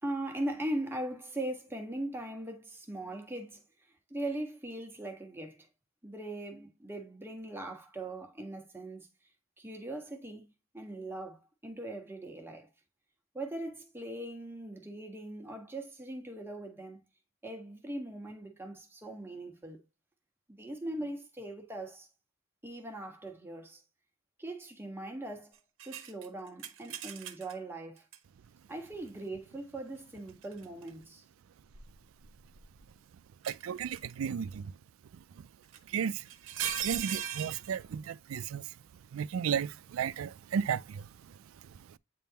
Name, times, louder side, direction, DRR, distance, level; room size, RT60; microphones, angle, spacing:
voice 1, 0.0-3.6 4.1-5.7 6.0-9.1 9.6-10.5 10.7-12.7 13.3-17.0 17.4-19.8 20.5-22.1 22.6-23.8 24.4-25.5 25.8-28.0 28.7-31.2, right 1 dB, 10° right, 1.4 m, -40 dB
sound 1, 25.8-27.5 28.1-28.2 30.3-30.9 31.7-32.8 33.4-34.1 35.7-35.8 36.3-37.7, right 10 dB, 70° right, 0.9 m, -38 dB
voice 2, 33.5-34.7 35.9-36.2 36.8-38.6 39.1-41.0, right 7 dB, 85° right, 0.4 m, -34 dB
9.2 x 3.7 x 2.8 m
head